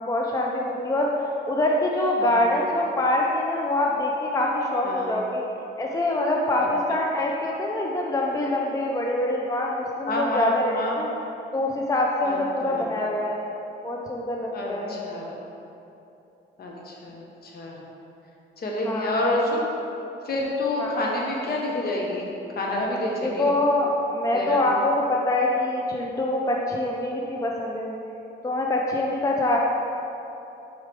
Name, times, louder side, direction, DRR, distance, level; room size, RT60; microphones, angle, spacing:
voice 1, 0.0-5.4 5.8-11.1 11.5-13.4 13.8-14.9 18.9-19.2 20.8-21.0 23.2-27.9 28.4-29.6, left 1 dB, 15° left, -1 dB, 0.5 m, -25 dB
voice 2, 6.6-7.0 10.1-11.0 12.2-12.4 12.6-12.9 14.5-15.4 16.6-17.8 18.6-19.7 20.2-22.3 22.5-23.5 24.3-24.6, left 1 dB, 50° left, -2 dB, 1.1 m, -28 dB
6.5 x 4.6 x 3.5 m, 2.9 s
cardioid pair, 90°, 20 cm